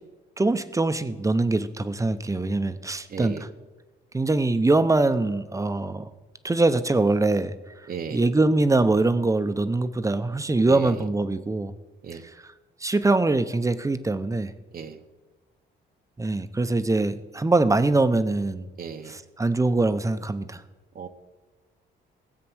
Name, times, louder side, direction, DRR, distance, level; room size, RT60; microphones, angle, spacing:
voice 1, 0.4-3.3 4.1-6.1 6.4-7.5 8.1-11.7 12.8-14.5 16.2-18.7 19.4-20.6, right 2 dB, 15° right, 11 dB, 0.7 m, -23 dB
voice 2, 3.1-3.5 7.9-8.3 10.6-11.0 12.0-12.2 14.7-15.0 18.8-19.2 20.9-21.1, right 6 dB, 50° right, 7 dB, 0.9 m, -35 dB
16.5 x 7.7 x 6.2 m, 1.2 s
cardioid pair, 90°, 20 cm